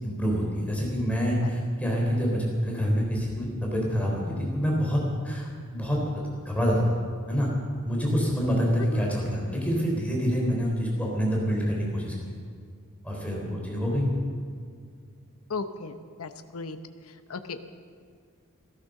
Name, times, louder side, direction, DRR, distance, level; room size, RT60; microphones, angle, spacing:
voice 1, 0.0-7.0 7.3-7.5 7.8-12.1 13.0-14.1, equal, 5° left, -2 dB, 3.6 m, -26 dB
voice 2, 8.8-9.1 15.5-16.8 17.0-17.7, left 4 dB, 75° left, 9 dB, 0.8 m, -36 dB
15.0 x 13.5 x 6.5 m, 2.1 s
head